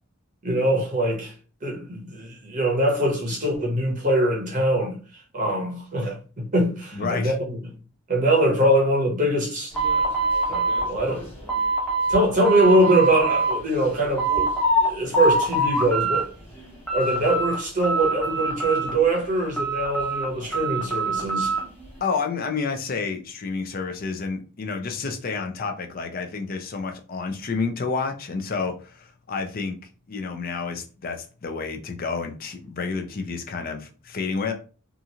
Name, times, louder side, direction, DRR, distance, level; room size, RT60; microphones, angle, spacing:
voice 1, 0.4-1.3 1.6-5.0 5.3-7.7 8.1-9.7 10.5-11.3 12.1-14.5 14.8-16.3 16.9-21.5, right 1 dB, 40° right, 0.7 m, -23 dB
voice 2, 6.9-7.3 22.0-29.8 30.1-34.5, left 4 dB, 45° left, 0.5 m, -29 dB
sound 1, 9.7-12.2 12.4-13.5 13.9-14.9 15.1-16.2 16.6-17.6 17.8-19.1 19.6-21.6, right 2 dB, 10° left, 0.9 m, -24 dB
2.9 x 2.4 x 2.7 m
head